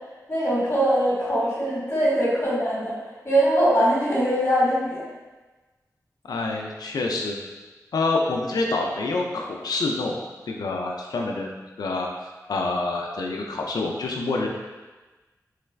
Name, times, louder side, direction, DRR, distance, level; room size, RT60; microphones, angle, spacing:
voice 1, 0.3-3.0 3.2-5.0, equal, 35° left, -7 dB, 1.3 m, -22 dB
voice 2, 6.3-7.4 7.9-10.2 10.5-11.5 11.8-12.1 12.5-14.5, left 3 dB, 90° left, 0 dB, 0.3 m, -26 dB
3.2 x 2.3 x 3.2 m, 1.2 s
wide cardioid pair, 55°, 6 cm